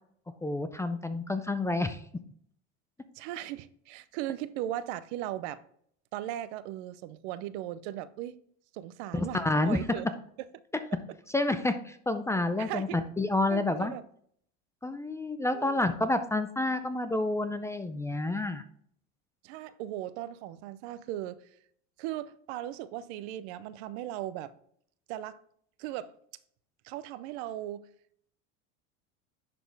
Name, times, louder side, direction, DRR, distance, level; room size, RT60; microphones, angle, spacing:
voice 1, 0.4-2.0 9.1-9.8 11.3-13.9 14.8-18.6, left 2 dB, 10° left, 0.4 m, -29 dB
voice 2, 3.1-5.6 6.1-8.4 8.7-10.1 10.4-10.5 12.6-13.0 13.5-14.0 15.5-15.8 19.4-21.4 22.0-24.5 25.1-25.4 25.8-26.1 26.8-27.8, right 13 dB, 70° right, 0.6 m, -37 dB
10.5 x 4.2 x 3.4 m
supercardioid pair, 115°, 35 cm